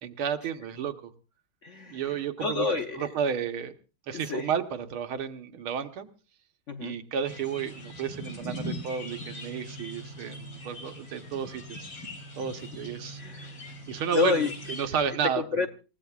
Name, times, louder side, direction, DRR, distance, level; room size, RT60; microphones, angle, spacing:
voice 1, 0.0-1.1 1.9-2.7 3.0-3.7 4.1-6.1 6.8-11.8 12.4-13.2 13.9-15.7, right 7 dB, 80° right, 7 dB, 2.0 m, -32 dB
voice 2, 1.6-3.1 4.1-4.5 6.7-7.0 13.2-13.6 14.1-14.5 15.2-15.7, left 4 dB, 60° left, 7 dB, 0.7 m, -29 dB
sound 1, 7.3-14.9, equal, 75° left, 4.6 m, -41 dB
28.0 x 15.5 x 2.4 m, 0.33 s
omnidirectional pair, 2.3 m